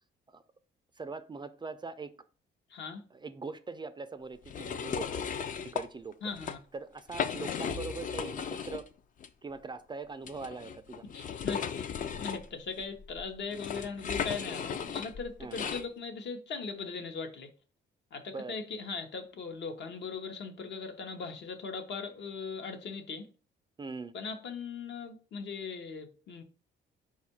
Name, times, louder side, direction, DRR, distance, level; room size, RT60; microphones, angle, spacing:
voice 1, 1.0-2.1 3.1-5.2 5.7-6.1 6.7-8.8 9.4-11.0 15.4-15.6 18.3-18.5 23.8-24.1, right 4 dB, 25° right, 0.3 m, -41 dB
voice 2, 2.7-3.0 6.2-6.6 11.1-17.5 18.1-23.3 24.1-26.4, left 5 dB, 65° left, 0.8 m, -39 dB
sound 1, 4.5-5.9 6.3-6.6 7.0-8.9 9.2-9.3 10.2-15.9, left 7 dB, 45° left, 0.4 m, -36 dB
4.4 x 2.4 x 4.3 m
cardioid pair, 90°, 20 cm